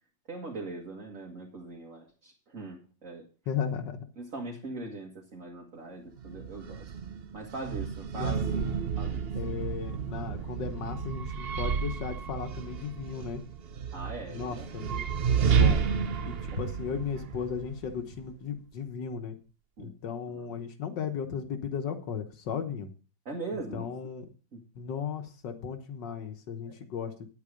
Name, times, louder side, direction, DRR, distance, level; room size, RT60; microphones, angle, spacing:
voice 1, 0.3-3.2 4.2-6.9 7.3-8.4 9.0-9.3 13.9-14.8 19.8-19.9 20.3-20.5 23.3-23.9 24.5-24.6 26.7-26.8, right 2 dB, 45° right, -2 dB, 2.1 m, -41 dB
voice 2, 3.5-4.0 8.1-8.8 9.3-13.4 14.3-15.8 16.2-19.4 19.8-22.9 23.7-24.2 24.7-27.1, left 7 dB, 70° left, 8 dB, 1.7 m, -36 dB
sound 1, 6.2-18.3, right 7 dB, 80° right, 0.5 m, -31 dB
9.6 x 8.4 x 5.1 m, 0.38 s
omnidirectional pair, 2.0 m